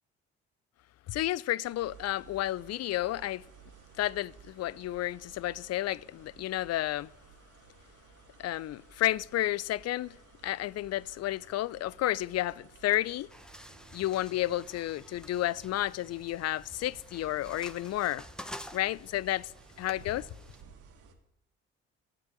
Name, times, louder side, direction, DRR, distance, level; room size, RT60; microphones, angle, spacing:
voice 1, 1.1-3.4 4.0-7.1 8.4-10.2 10.4-13.3 13.9-18.2 18.7-19.5 19.8-20.3, left 14 dB, 50° left, 0.5 m, -31 dB
sound 1, 1.6-21.1, right 6 dB, 65° right, 2.2 m, -56 dB
sound 2, 13.3-20.6, equal, ahead, 1.2 m, -49 dB
28.5 x 9.5 x 3.9 m
hypercardioid pair, 50°, 33 cm